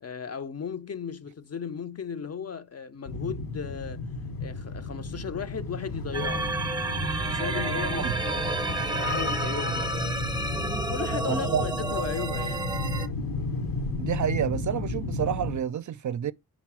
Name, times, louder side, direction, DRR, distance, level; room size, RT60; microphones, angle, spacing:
voice 1, 0.0-4.0 4.4-6.5 7.3-10.1 10.9-12.7, left 6 dB, 45° left, 0.6 m, -36 dB
sound 1, 3.1-15.6, left 2 dB, 80° left, 1.0 m, -33 dB
sound 2, 6.1-13.1, right 2 dB, 15° right, 0.6 m, -30 dB
voice 2, 11.3-11.6 14.0-16.3, right 9 dB, 60° right, 0.4 m, -29 dB
5.0 x 4.0 x 5.9 m
wide cardioid pair, 85°, 35 cm